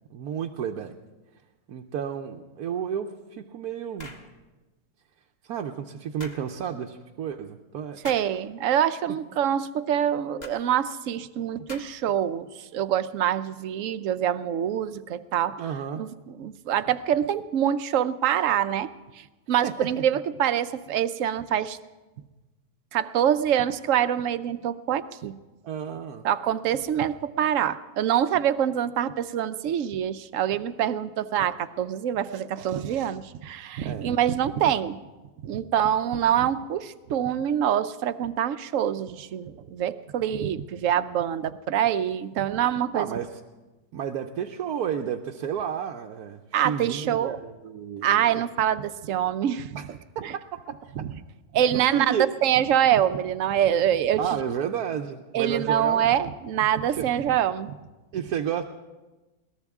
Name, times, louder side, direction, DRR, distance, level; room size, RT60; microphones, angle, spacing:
voice 1, 0.1-0.9 1.7-4.1 5.4-8.0 15.6-16.0 19.6-19.7 25.6-26.2 33.8-34.1 42.9-43.3 43.9-48.4 49.8-49.9 51.7-52.3 54.2-56.1 56.9-57.0 58.1-58.6, right 8 dB, 85° right, 3 dB, 1.3 m, -31 dB
sound 1, 4.0-4.3 6.2-6.4 8.0-8.3 10.4-10.6 11.7-12.1, left 1 dB, 30° left, 1.6 m, -42 dB
voice 2, 8.0-12.5 12.7-15.7 16.0-18.9 19.5-21.8 22.9-25.3 26.2-35.0 35.4-43.1 46.5-47.4 48.0-49.7 50.2-50.3 51.0-51.1 51.5-54.4 55.3-57.7, right 10 dB, 65° right, 12 dB, 1.0 m, -25 dB
21.5 x 18.5 x 3.6 m, 1.2 s
omnidirectional pair, 1.6 m